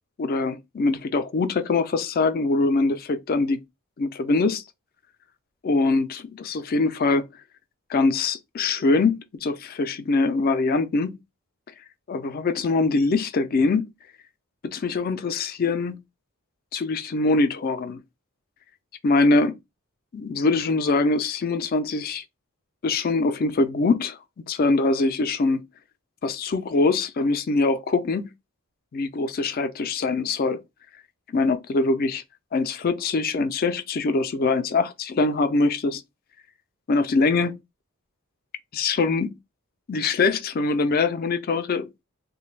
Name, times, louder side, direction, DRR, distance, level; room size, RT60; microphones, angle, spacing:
voice 1, 0.2-3.6 4.0-4.6 5.6-7.3 7.9-11.2 12.1-13.9 14.6-16.0 16.7-18.0 19.0-19.5 20.1-22.2 22.8-24.2 24.5-25.6 26.2-28.3 28.9-30.6 31.3-32.2 32.5-36.0 36.9-37.6 38.7-39.3 39.9-41.9, left 3 dB, 45° left, 0.4 m, -23 dB
3.2 x 2.2 x 3.1 m
head